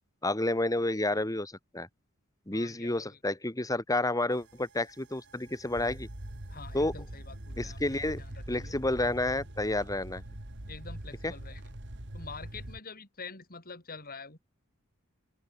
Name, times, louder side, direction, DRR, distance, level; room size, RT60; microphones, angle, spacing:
voice 1, 0.2-1.9 2.5-6.1 6.7-6.9 7.6-8.2 8.5-10.2 11.2-11.3, left 2 dB, 15° left, 2.1 m, -30 dB
voice 2, 2.5-3.2 6.5-8.7 10.7-11.6 12.1-14.4, left 4 dB, 45° left, 7.0 m, -46 dB
sound 1, 4.3-12.8, right 1 dB, 55° right, 2.6 m, -43 dB
open air
head